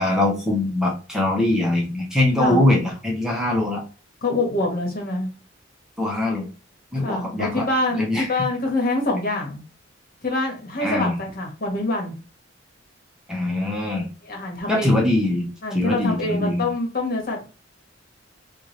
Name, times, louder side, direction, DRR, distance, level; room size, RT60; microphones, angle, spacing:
voice 1, 0.0-3.8 6.0-6.5 6.9-7.7 7.9-8.5 10.8-11.2 13.3-14.1 14.7-15.5 15.7-16.7, left 1 dB, 5° right, -1 dB, 0.9 m, -22 dB
voice 2, 4.2-5.3 7.0-9.6 10.2-12.1 14.3-14.9 15.6-17.4, left 2 dB, 50° left, 1 dB, 1.4 m, -25 dB
4.5 x 2.5 x 3.1 m, 0.33 s
head